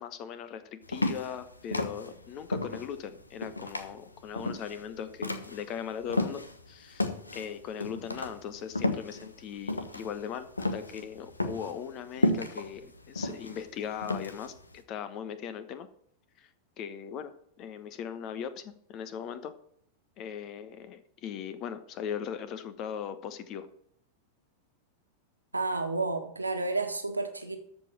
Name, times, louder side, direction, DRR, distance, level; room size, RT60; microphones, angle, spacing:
voice 1, 0.0-7.1 7.3-15.9 16.4-16.5 16.8-19.6 20.2-23.7, left 8 dB, 35° left, 13 dB, 1.2 m, -39 dB
sound 1, 0.9-6.6 7.0-14.7, left 2 dB, 80° left, 1.1 m, -32 dB
voice 2, 25.5-27.6, right 3 dB, 80° right, 5 dB, 1.6 m, -31 dB
14.0 x 5.2 x 7.4 m, 0.68 s
figure-of-eight pair, 90°, 0 cm